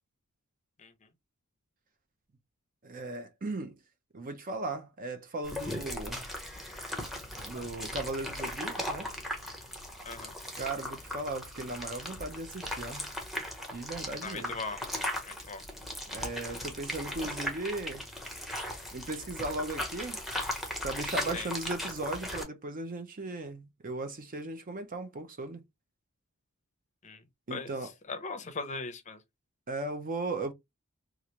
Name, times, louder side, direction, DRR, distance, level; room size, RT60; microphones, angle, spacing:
voice 1, 2.8-3.8 4.1-6.3 7.4-9.1 10.5-13.1 13.7-14.6 16.1-18.0 18.9-20.2 20.8-25.6 27.5-27.9 29.7-30.5, right 2 dB, 40° right, 0.6 m, -37 dB
sound 1, 5.4-22.4, left 1 dB, ahead, 0.8 m, -38 dB
voice 2, 14.2-14.8 15.3-15.6 21.3-21.5 27.0-27.2 27.5-27.8 28.1-29.2, left 4 dB, 35° left, 0.6 m, -39 dB
3.1 x 2.4 x 2.9 m
head